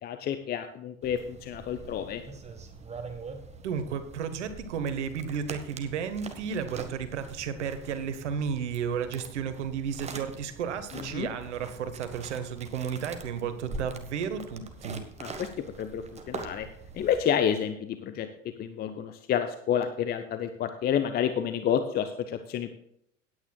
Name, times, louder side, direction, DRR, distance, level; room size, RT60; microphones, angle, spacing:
voice 1, 0.0-2.2 10.9-11.3 15.2-15.5 15.8-16.7 16.9-18.3 18.6-22.7, left 9 dB, 25° left, 9 dB, 0.7 m, -29 dB
sound 1, 1.0-17.2, right 4 dB, 15° right, 1.4 m, -44 dB
voice 2, 3.6-15.0, right 7 dB, 65° right, 10 dB, 1.5 m, -33 dB
17.5 x 9.4 x 2.3 m, 0.71 s
figure-of-eight pair, 80°, 38 cm